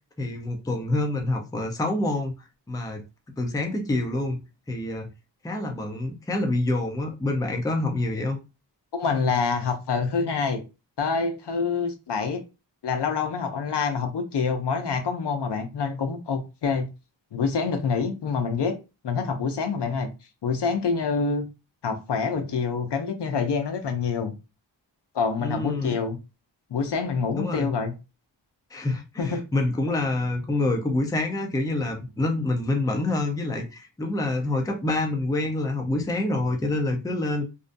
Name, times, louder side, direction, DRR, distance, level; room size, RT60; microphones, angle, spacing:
voice 1, 0.2-3.0 3.4-4.4 4.7-5.1 5.4-8.4 25.4-26.0 27.3-27.7 28.7-37.4, left 2 dB, 10° left, 0.4 m, -27 dB
voice 2, 8.9-10.6 11.0-12.4 12.8-16.9 17.3-18.8 19.0-20.1 20.4-21.5 21.8-24.3 25.1-26.2 26.7-27.9 29.2-29.4, left 5 dB, 60° left, 0.6 m, -26 dB
2.5 x 2.2 x 2.5 m
wide cardioid pair, 105°, 46 cm